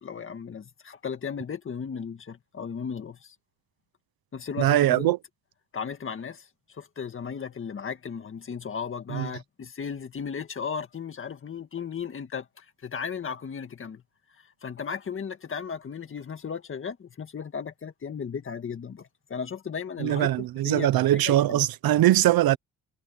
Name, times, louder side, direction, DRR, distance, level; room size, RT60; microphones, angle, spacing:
voice 1, 0.0-3.4 4.3-5.1 5.7-14.0 14.4-21.6, left 6 dB, 30° left, 1.8 m, -36 dB
voice 2, 4.6-5.2 9.1-9.3 20.0-22.6, right 13 dB, 65° right, 0.8 m, -21 dB
cardioid pair, 155°, 39 cm